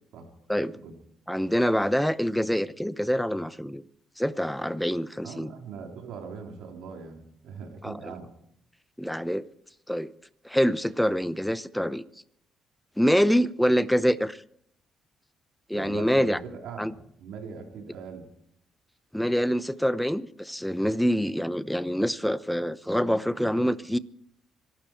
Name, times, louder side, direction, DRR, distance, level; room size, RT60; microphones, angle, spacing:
voice 1, 1.3-3.8 4.2-5.5 7.8-8.0 9.0-9.4 9.9-10.1 10.4-12.0 13.0-14.4 15.7-16.4 16.8-16.9 19.1-24.0, equal, ahead, 0.8 m, -25 dB
voice 2, 5.2-8.3 15.7-18.3, right 5 dB, 85° right, 3.3 m, -41 dB
25.5 x 12.0 x 4.5 m
cardioid pair, 90°, 0 cm